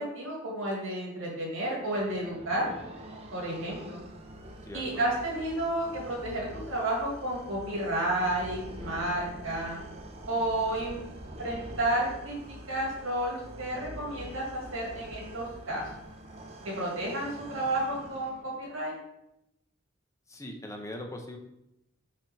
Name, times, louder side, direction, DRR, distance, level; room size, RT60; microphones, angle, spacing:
voice 1, 0.0-2.8 3.3-4.0 4.7-9.8 10.3-11.0 11.4-15.8 16.6-19.0, right 1 dB, 75° right, -3 dB, 1.8 m, -31 dB
sound 1, 1.7-18.7, right 1 dB, 30° right, 0.7 m, -45 dB
voice 2, 4.6-5.0 20.3-21.4, left 1 dB, 15° left, 3 dB, 0.7 m, -40 dB
5.2 x 3.5 x 5.6 m, 0.86 s
head